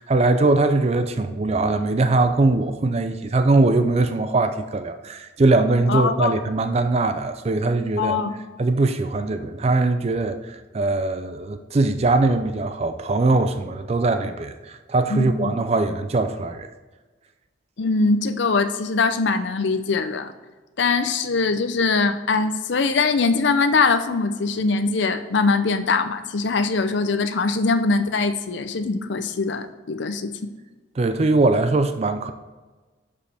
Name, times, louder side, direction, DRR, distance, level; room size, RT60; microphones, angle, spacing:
voice 1, 0.0-8.2 8.6-16.7 31.0-32.3, right 2 dB, 30° right, 9 dB, 0.4 m, -21 dB
voice 2, 5.9-6.3 8.0-8.3 15.1-15.5 17.8-20.3 20.8-30.3, left 4 dB, 65° left, 10 dB, 0.6 m, -22 dB
11.0 x 5.0 x 3.4 m, 1.3 s
head